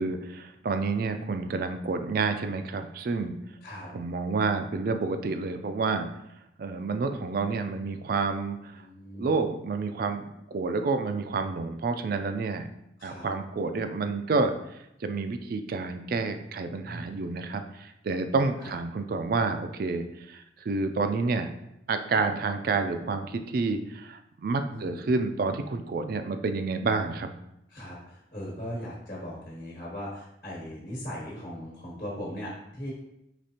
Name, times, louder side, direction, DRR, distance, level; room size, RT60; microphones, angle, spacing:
voice 1, 0.0-3.3 3.9-6.1 6.6-8.8 9.2-12.7 13.0-14.5 15.0-21.5 21.9-27.3, right 4 dB, 55° right, 8 dB, 0.3 m, -29 dB
voice 2, 8.7-9.6 13.0-13.3 16.8-17.2 18.6-18.7 24.7-25.1 27.7-32.9, equal, 45° left, -5 dB, 1.3 m, -39 dB
5.0 x 3.4 x 2.8 m, 0.83 s
head